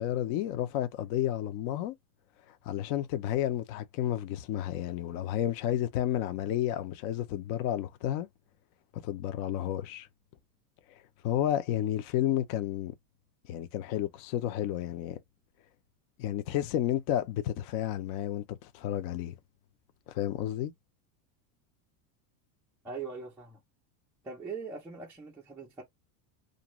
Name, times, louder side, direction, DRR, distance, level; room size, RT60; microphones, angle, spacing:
voice 1, 0.0-1.9 2.7-8.3 9.0-10.1 11.2-12.9 13.5-15.2 16.2-19.3 20.1-20.7, left 12 dB, 50° left, 0.6 m, -31 dB
voice 2, 22.8-23.6 24.2-25.8, right 5 dB, 5° right, 0.3 m, -41 dB
2.6 x 2.2 x 2.9 m
supercardioid pair, 150°, 50 cm